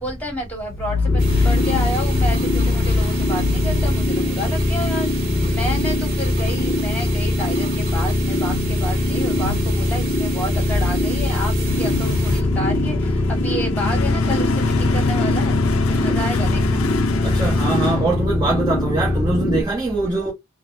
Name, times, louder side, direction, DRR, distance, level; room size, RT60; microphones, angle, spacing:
voice 1, 0.0-5.2 5.5-15.6 15.9-16.8 20.0-20.2, equal, 5° left, 1.3 m, -30 dB
sound 1, 0.7-18.9, left 3 dB, 85° left, 0.5 m, -25 dB
sound 2, 1.1-19.6, left 1 dB, 25° left, 0.7 m, -22 dB
sound 3, 1.2-12.4, right 5 dB, 40° right, 1.2 m, -35 dB
voice 2, 17.2-20.3, right 3 dB, 20° right, 0.9 m, -23 dB
3.9 x 2.0 x 2.4 m
head